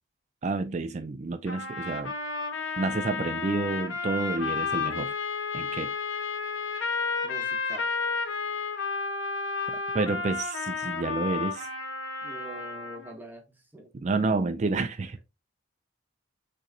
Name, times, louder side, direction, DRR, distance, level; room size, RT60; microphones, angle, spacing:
voice 1, 0.4-2.1 2.8-5.1 5.5-5.9 9.7-11.7 14.0-15.2, right 3 dB, 35° right, 0.4 m, -29 dB
sound 1, 1.5-13.1, left 4 dB, 80° left, 1.4 m, -32 dB
voice 2, 7.2-7.9 12.2-13.9, right 1 dB, 10° right, 0.9 m, -44 dB
6.3 x 3.1 x 2.7 m
head